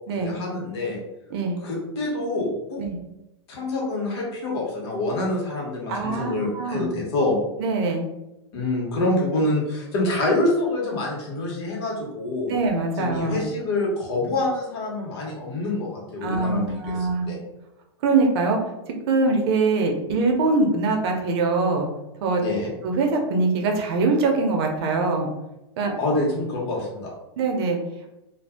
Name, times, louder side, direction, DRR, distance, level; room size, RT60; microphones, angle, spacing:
voice 1, 0.2-1.0 1.6-2.8 3.5-7.4 8.5-12.5 13.0-16.6 17.0-17.4 22.4-22.7 26.0-27.1, left 2 dB, 60° left, -2 dB, 1.3 m, -26 dB
voice 2, 1.3-1.6 2.8-3.0 5.9-6.9 7.6-8.0 12.5-13.5 16.2-17.3 18.0-18.7 19.1-21.9 22.2-22.4 22.8-25.3 25.8-25.9 27.4-27.8, right 3 dB, 60° right, 3 dB, 0.7 m, -23 dB
2.6 x 2.3 x 3.4 m, 0.93 s
hypercardioid pair, 125°, 15 cm